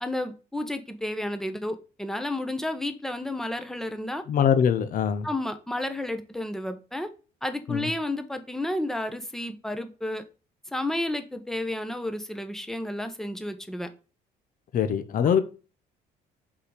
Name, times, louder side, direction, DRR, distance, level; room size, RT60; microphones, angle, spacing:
voice 1, 0.0-4.2 5.2-7.1 7.4-10.2 10.7-13.9, left 1 dB, ahead, 1.1 m, -31 dB
voice 2, 4.3-5.3 7.7-7.9 14.7-15.4, left 8 dB, 55° left, 1.0 m, -23 dB
5.7 x 5.0 x 4.9 m
cardioid pair, 110°, 17 cm